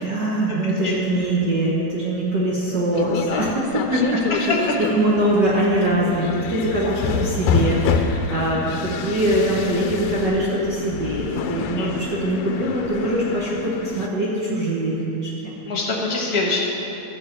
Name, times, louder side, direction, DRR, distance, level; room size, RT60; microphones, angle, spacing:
voice 1, 0.0-15.5, right 1 dB, 70° right, -6 dB, 1.0 m, -23 dB
sound 1, 2.9-14.1, left 6 dB, 85° left, 2.1 m, -27 dB
voice 2, 4.3-4.8 6.8-7.0 11.7-11.9 15.7-16.6, left 3 dB, 45° left, -2 dB, 1.2 m, -24 dB
13.0 x 5.5 x 7.1 m, 3.0 s
omnidirectional pair, 3.8 m